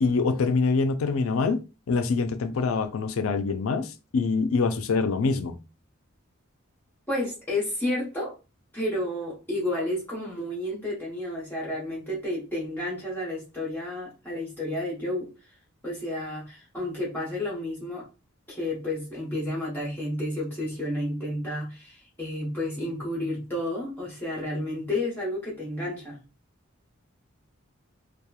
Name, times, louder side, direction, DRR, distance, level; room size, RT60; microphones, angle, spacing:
voice 1, 0.0-1.6 1.9-5.6, left 4 dB, 75° left, 0.4 m, -25 dB
voice 2, 7.1-8.3 8.7-15.5 15.8-18.0 18.5-26.2, left 1 dB, 10° left, 0.9 m, -31 dB
2.8 x 2.3 x 2.3 m
head